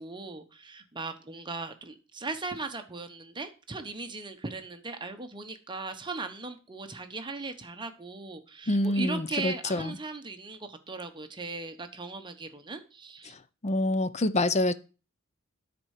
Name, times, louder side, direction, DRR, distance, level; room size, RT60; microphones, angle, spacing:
voice 1, 0.0-13.4, right 3 dB, 20° right, 1.0 m, -38 dB
voice 2, 8.7-10.0 13.6-14.7, left 1 dB, 30° left, 0.5 m, -26 dB
9.8 x 4.3 x 6.4 m
head